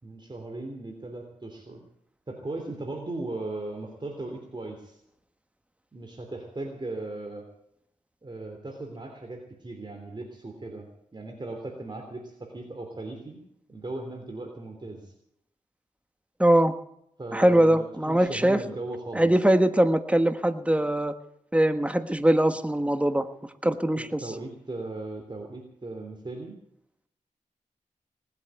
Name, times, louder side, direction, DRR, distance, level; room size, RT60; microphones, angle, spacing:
voice 1, 0.0-1.8 2.3-5.0 5.9-7.5 8.2-13.4 13.7-15.1 17.2-19.3 23.9-26.5, right 2 dB, 35° right, 2 dB, 3.3 m, -37 dB
voice 2, 16.4-16.7 17.3-18.6 19.1-21.1 21.5-23.3 23.6-24.2, right 1 dB, 10° right, 10 dB, 1.4 m, -22 dB
19.0 x 8.4 x 9.1 m, 0.75 s
cardioid pair, 55°, 13 cm